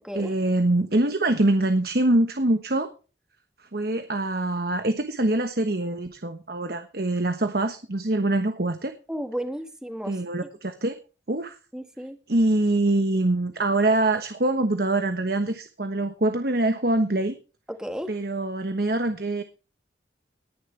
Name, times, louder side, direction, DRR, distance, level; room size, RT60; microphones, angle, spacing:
voice 1, 0.1-2.9 3.7-8.9 10.1-10.9 11.3-11.6 12.3-17.4 18.1-19.4, right 2 dB, 55° right, 8 dB, 1.2 m, -24 dB
voice 2, 9.1-10.2 11.7-12.2 17.8-18.1, equal, 5° right, 7 dB, 1.6 m, -33 dB
19.0 x 10.5 x 3.4 m, 0.34 s
head